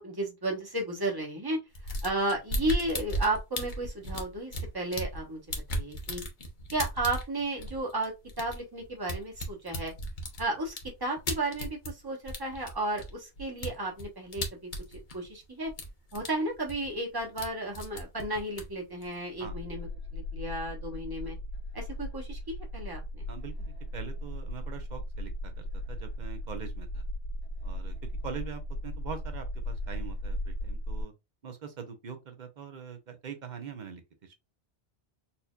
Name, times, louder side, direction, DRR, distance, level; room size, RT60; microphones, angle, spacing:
voice 1, 0.0-1.6 2.0-5.4 5.7-6.2 6.7-9.9 10.4-15.7 16.1-21.4 21.7-23.2, right 2 dB, 20° right, 1.0 m, -33 dB
sound 1, 1.7-5.2 5.5-12.0 12.3-15.4 15.7-16.3 16.5-17.5 17.7-19.4, equal, 50° left, 1.0 m, -36 dB
sound 2, 19.4-31.0, equal, 85° left, 1.7 m, -37 dB
voice 2, 23.3-27.0 27.6-27.9 28.2-31.1 31.4-34.3, right 6 dB, 45° right, 0.8 m, -43 dB
4.3 x 2.7 x 2.3 m
omnidirectional pair, 1.1 m